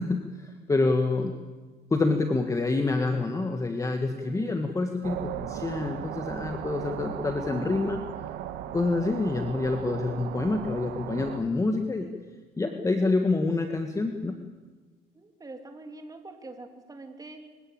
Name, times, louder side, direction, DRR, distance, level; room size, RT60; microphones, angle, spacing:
voice 1, 0.0-1.3 1.9-8.0 8.7-12.1 12.6-14.4, left 3 dB, 20° left, 6 dB, 1.6 m, -27 dB
voice 2, 4.2-4.6 15.1-17.4, right 2 dB, 20° right, 5 dB, 3.2 m, -44 dB
sound 1, 5.0-11.4, right 10 dB, 85° right, 1.7 m, -37 dB
25.0 x 16.0 x 8.9 m, 1.4 s
cardioid pair, 110°, 17 cm